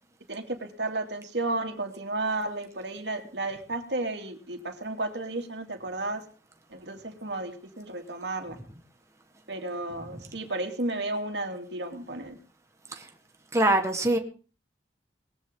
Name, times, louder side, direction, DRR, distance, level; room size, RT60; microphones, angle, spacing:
voice 1, 0.3-6.2 6.7-8.6 9.5-12.4, right 2 dB, 70° right, 5 dB, 2.8 m, -33 dB
voice 2, 13.5-14.2, right 1 dB, 15° right, 4 dB, 1.6 m, -23 dB
20.0 x 14.5 x 3.9 m, 0.37 s
head